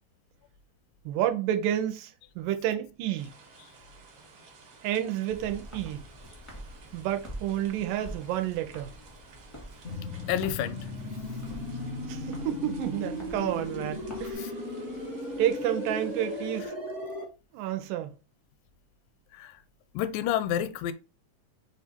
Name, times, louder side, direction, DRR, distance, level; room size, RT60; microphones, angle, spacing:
voice 1, 1.1-3.3 4.8-6.0 6.9-8.9 12.1-14.5 15.4-16.7 17.5-18.2, right 12 dB, 90° right, 2.2 m, -30 dB
sound 1, 3.2-16.7, right 4 dB, 60° right, 1.6 m, -54 dB
Walk footsteps, 5.3-14.3, right 1 dB, 20° left, 0.4 m, -47 dB
sound 2, 9.8-17.2, left 1 dB, 60° left, 0.7 m, -36 dB
voice 2, 10.3-10.8 14.4-14.5 19.3-19.6 19.9-20.9, left 10 dB, 85° left, 2.1 m, -29 dB
5.0 x 2.4 x 4.2 m
omnidirectional pair, 3.8 m